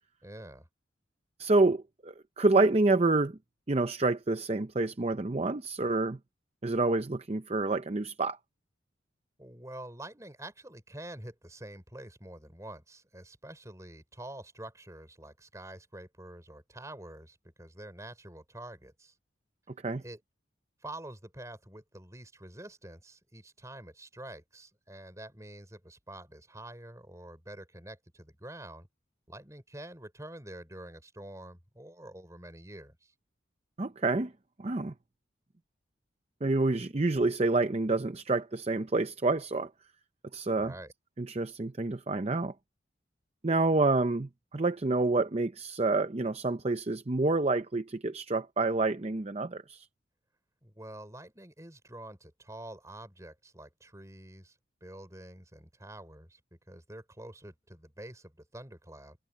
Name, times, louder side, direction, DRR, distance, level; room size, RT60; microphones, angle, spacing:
voice 1, 0.2-0.7 9.4-19.1 20.0-20.2 20.8-28.9 29.3-33.1 40.5-40.9 50.6-59.2, right 1 dB, 15° right, 4.6 m, -47 dB
voice 2, 1.4-3.4 3.7-6.2 6.6-8.4 19.8-20.0 33.8-34.3 34.6-34.9 36.4-39.7 40.3-40.7 41.2-42.5 43.4-49.9, right 2 dB, 30° right, 0.6 m, -28 dB
head